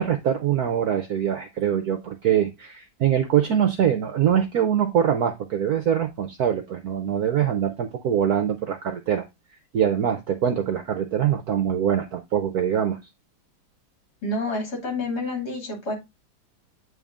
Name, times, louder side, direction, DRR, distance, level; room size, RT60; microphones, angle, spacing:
voice 1, 0.0-9.2 9.7-13.0, right 9 dB, 65° right, 8 dB, 1.0 m, -23 dB
voice 2, 14.2-15.9, left 2 dB, 50° left, 0 dB, 3.2 m, -28 dB
8.8 x 3.5 x 3.6 m, 0.21 s
omnidirectional pair, 2.3 m